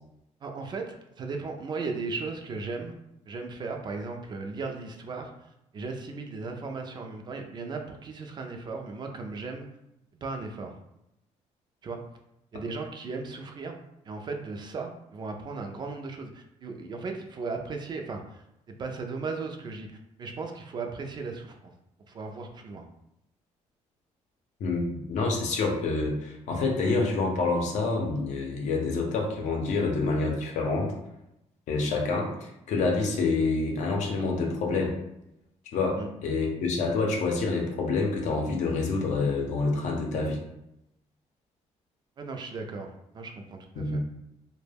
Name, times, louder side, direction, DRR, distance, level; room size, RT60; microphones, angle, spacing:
voice 1, 0.4-2.9 3.3-5.5 5.7-9.7 10.2-10.8 11.8-12.0 12.5-18.4 18.8-19.9 20.2-21.7 22.1-22.9 36.0-36.1 42.2-44.0, right 4 dB, 35° right, 4 dB, 0.3 m, -36 dB
voice 2, 24.6-30.9 31.7-34.9 35.7-40.4 43.8-44.0, left 3 dB, 75° left, 1 dB, 0.6 m, -27 dB
2.2 x 2.1 x 3.3 m, 0.84 s
cardioid pair, 130°, 12 cm